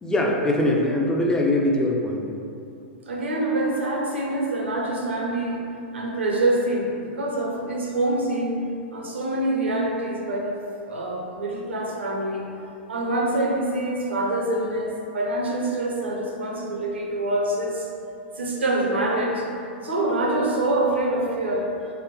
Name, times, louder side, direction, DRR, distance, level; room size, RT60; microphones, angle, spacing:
voice 1, 0.0-2.3, left 1 dB, 10° left, -1 dB, 0.4 m, -22 dB
voice 2, 3.1-5.6 5.9-8.6 8.9-10.6 10.9-12.5 12.9-17.9 18.4-19.5 19.8-21.7, right 1 dB, 80° right, -1 dB, 0.6 m, -25 dB
3.3 x 2.1 x 3.6 m, 2.6 s
figure-of-eight pair, 100°, 6 cm